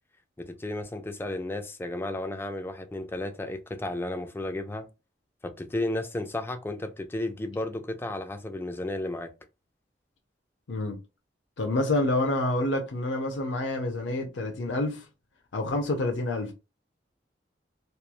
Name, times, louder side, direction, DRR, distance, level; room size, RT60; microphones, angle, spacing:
voice 1, 0.4-4.9 5.4-9.3, left 1 dB, 10° left, 0.3 m, -33 dB
voice 2, 10.7-11.0 11.6-15.1 15.5-16.5, left 2 dB, 80° left, 0.5 m, -28 dB
3.0 x 2.3 x 2.2 m
head